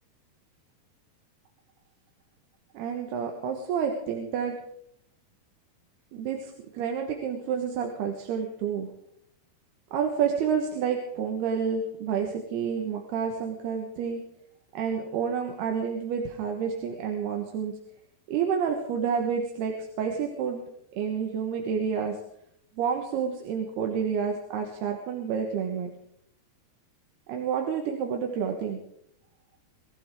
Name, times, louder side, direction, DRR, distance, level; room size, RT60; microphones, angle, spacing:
voice 1, 2.7-4.6 6.1-8.9 9.9-14.2 14.7-17.8 18.3-20.6 21.0-22.2 22.8-25.9 27.3-28.8, right 7 dB, 85° right, 2 dB, 3.4 m, -29 dB
23.5 x 15.0 x 3.7 m, 0.72 s
omnidirectional pair, 4.5 m